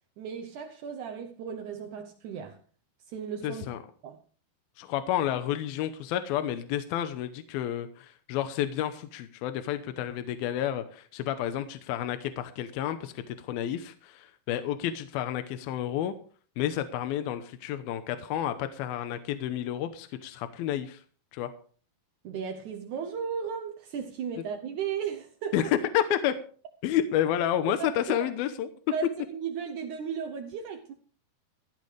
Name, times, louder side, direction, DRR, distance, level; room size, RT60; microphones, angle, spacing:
voice 1, 0.2-2.6 3.1-3.7 4.0-4.2 22.2-25.7 27.8-28.3 28.9-30.9, right 7 dB, 80° right, 1.7 m, -35 dB
voice 2, 3.4-3.8 4.8-16.2 16.6-21.0 21.3-21.5 25.5-26.3 26.8-28.7, left 11 dB, 75° left, 2.5 m, -30 dB
16.5 x 15.0 x 3.3 m
omnidirectional pair, 4.9 m